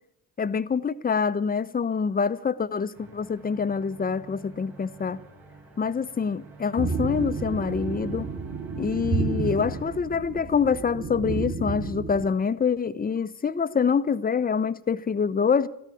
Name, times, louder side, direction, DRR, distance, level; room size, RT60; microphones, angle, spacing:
voice 1, 0.4-5.2 5.8-8.3 8.8-15.7, left 6 dB, 20° left, 0.7 m, -26 dB
sound 1, 2.9-10.0, right 3 dB, 80° right, 3.2 m, -49 dB
sound 2, 6.8-12.2, right 4 dB, 30° right, 1.8 m, -31 dB
13.5 x 11.5 x 8.3 m
hypercardioid pair, 50°, 50 cm